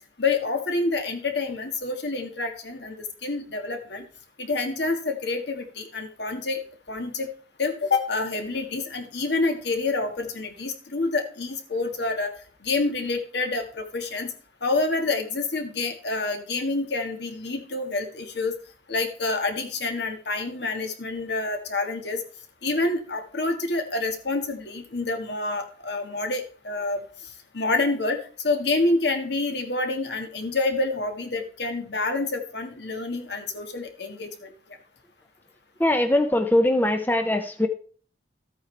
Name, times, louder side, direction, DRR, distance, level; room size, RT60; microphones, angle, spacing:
voice 1, 0.2-4.0 4.4-6.6 6.9-7.3 7.6-12.3 12.6-14.3 14.6-18.5 18.9-22.2 22.6-34.5, left 3 dB, 60° left, 5 dB, 1.7 m, -27 dB
voice 2, 35.8-37.7, left 1 dB, 10° left, 7 dB, 0.6 m, -21 dB
13.5 x 8.6 x 3.3 m, 0.42 s
head